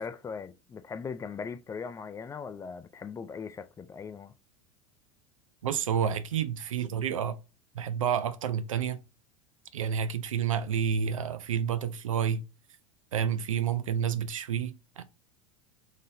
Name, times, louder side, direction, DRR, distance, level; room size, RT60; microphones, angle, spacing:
voice 1, 0.0-4.3, left 5 dB, 20° left, 0.4 m, -39 dB
voice 2, 5.6-7.4 7.8-9.0 9.7-12.4 13.1-15.0, right 8 dB, 85° right, 0.4 m, -29 dB
3.7 x 2.7 x 2.6 m
hypercardioid pair, 85°, 17 cm